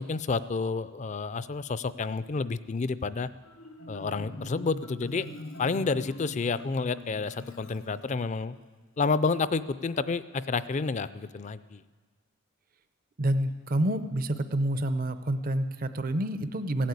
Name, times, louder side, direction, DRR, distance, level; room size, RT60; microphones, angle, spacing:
voice 1, 0.0-3.3 3.9-5.3 5.6-8.6 9.0-11.8, left 4 dB, 35° left, 15 dB, 0.4 m, -30 dB
Marimba xylophone, 3.4-8.6, left 1 dB, 80° left, 0.9 m, -43 dB
voice 2, 13.2-16.9, right 1 dB, 45° right, 11 dB, 0.6 m, -28 dB
16.5 x 8.6 x 8.2 m, 1.4 s
head